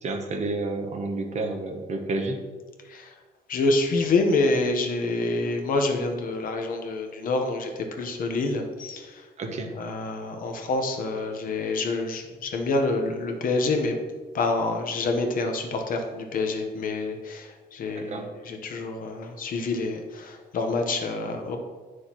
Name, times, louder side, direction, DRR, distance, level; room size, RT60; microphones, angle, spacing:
voice 1, 0.0-2.4 9.4-9.7 18.0-18.3, right 2 dB, 45° right, 4 dB, 0.9 m, -30 dB
voice 2, 3.5-7.7 8.0-9.2 9.8-14.0 14.3-21.6, left 3 dB, 60° left, 4 dB, 1.0 m, -27 dB
9.5 x 6.3 x 3.0 m, 1.4 s
wide cardioid pair, 175°, 17 cm